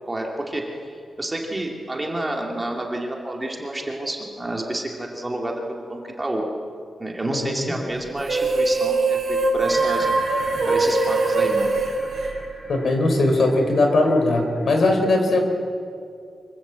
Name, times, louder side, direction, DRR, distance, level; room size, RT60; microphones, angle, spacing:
voice 1, 0.1-0.6 1.2-6.5 7.0-10.1 10.7-11.7, right 1 dB, 15° right, 0 dB, 2.7 m, -29 dB
voice 2, 7.3-7.7 12.7-15.4, left 2 dB, 55° left, 4 dB, 4.3 m, -20 dB
sound 1, 8.2-12.9, right 3 dB, 55° right, 4.3 m, -22 dB
sound 2, 9.6-14.8, right 1 dB, 15° left, 7.0 m, -39 dB
25.0 x 23.0 x 8.3 m, 2.3 s
wide cardioid pair, 175°, 0 cm